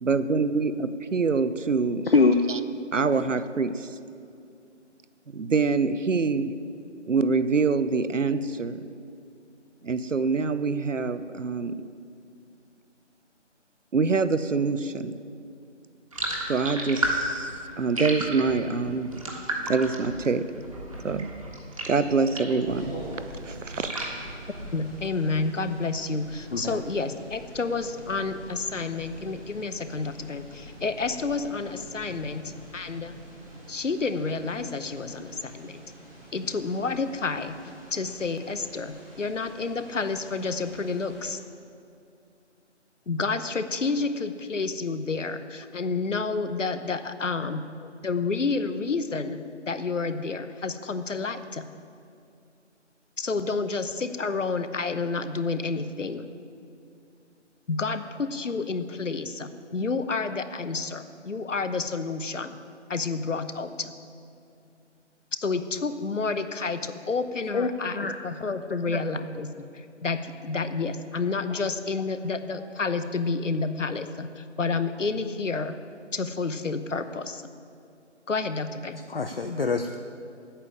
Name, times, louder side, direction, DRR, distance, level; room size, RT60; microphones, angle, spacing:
voice 1, 0.0-2.1 2.9-3.9 5.3-6.5 7.1-8.8 9.8-11.8 13.9-15.1 16.5-19.1 19.6-20.5 21.0-21.3 21.9-23.0 23.4-24.0, right 4 dB, 80° right, 12 dB, 0.8 m, -25 dB
voice 2, 2.0-2.4 26.5-26.8 35.0-35.1 67.5-68.2 68.9-69.0 71.5-71.6 79.1-80.0, left 4 dB, 50° left, 7 dB, 0.5 m, -24 dB
sound 1, 16.1-22.7 23.0-25.1, right 1 dB, 30° right, 1.4 m, -33 dB
sound 2, 22.6-41.3, right 1 dB, ahead, 0.8 m, -45 dB
voice 3, 24.7-33.2 33.7-35.8 36.3-37.6 37.9-41.4 43.1-47.7 48.0-51.7 53.2-56.2 57.7-62.6 62.9-63.9 65.4-75.7 76.1-77.4 78.3-79.0, left 4 dB, 85° left, 11 dB, 0.9 m, -30 dB
8.8 x 7.1 x 8.7 m, 2.5 s
figure-of-eight pair, 165°, 37 cm